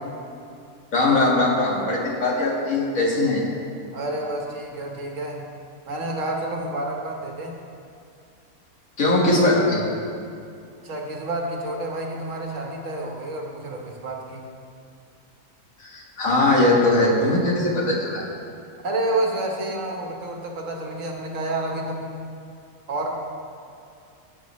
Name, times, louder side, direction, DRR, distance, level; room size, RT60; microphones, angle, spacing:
voice 1, 0.9-3.4 9.0-9.8 15.8-18.2, left 2 dB, 70° left, -4 dB, 2.3 m, -20 dB
voice 2, 3.9-5.4 5.9-7.6 10.8-14.5 18.8-22.2 22.9-23.1, right 2 dB, 65° right, 1 dB, 1.6 m, -29 dB
15.5 x 8.4 x 3.1 m, 2.5 s
omnidirectional pair, 1.5 m